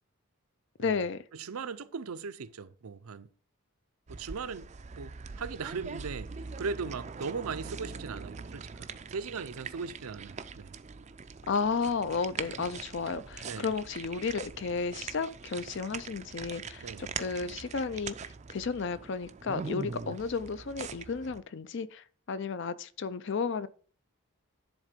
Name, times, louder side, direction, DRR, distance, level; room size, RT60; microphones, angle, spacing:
voice 1, 0.8-1.2 11.5-23.7, left 5 dB, 55° left, 0.4 m, -33 dB
voice 2, 1.3-3.3 4.1-6.3 6.6-10.7 13.4-13.7 16.8-17.1, right 5 dB, 80° right, 0.5 m, -38 dB
sound 1, 4.1-21.4, right 5 dB, 30° right, 0.4 m, -42 dB
10.5 x 3.7 x 5.1 m
head